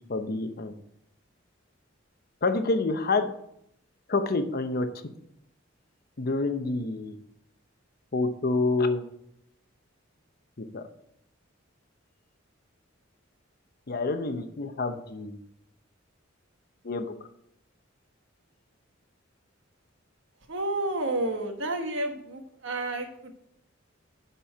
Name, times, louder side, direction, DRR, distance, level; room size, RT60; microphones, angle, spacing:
voice 1, 0.1-0.7 2.4-3.3 4.1-4.9 6.2-7.2 8.1-9.0 10.6-10.8 13.9-15.4 16.8-17.1, left 3 dB, 50° left, 8 dB, 0.7 m, -27 dB
voice 2, 20.5-23.3, right 2 dB, 65° right, 5 dB, 1.3 m, -30 dB
10.5 x 4.4 x 4.7 m, 0.75 s
head